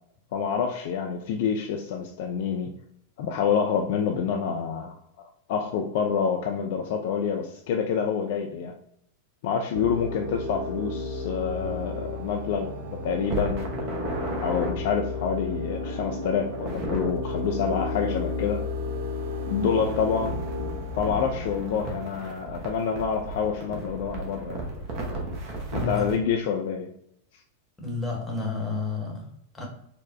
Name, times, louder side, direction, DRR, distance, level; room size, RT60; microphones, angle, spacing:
voice 1, 0.3-2.7 3.2-8.7 9.4-13.8 14.3-18.7 19.5-20.4 20.9-24.7 25.7-26.9, left 6 dB, 50° left, 3 dB, 0.3 m, -27 dB
sound 1, 9.7-21.7, left 2 dB, 55° right, 0.5 m, -33 dB
sound 2, 13.2-14.7 16.5-17.1 19.8-26.2, right 2 dB, 35° right, 0.9 m, -34 dB
voice 2, 25.7-26.1 27.8-29.7, left 4 dB, 10° left, -1 dB, 1.0 m, -31 dB
4.1 x 2.1 x 2.6 m, 0.71 s
figure-of-eight pair, 90°, 0 cm